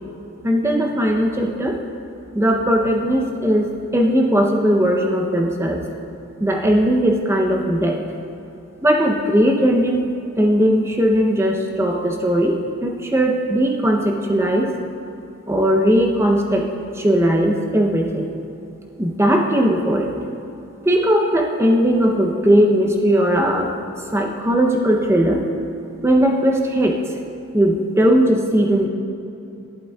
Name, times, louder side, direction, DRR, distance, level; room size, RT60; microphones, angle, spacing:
voice 1, 0.4-1.8 2.3-5.8 6.4-8.0 8.8-10.0 10.4-14.7 15.5-16.7 16.9-18.3 19.0-20.1 20.8-23.7 24.1-25.4 26.0-27.0 27.5-28.9, equal, 15° right, 1 dB, 0.6 m, -18 dB
11.0 x 11.0 x 2.3 m, 2.8 s
head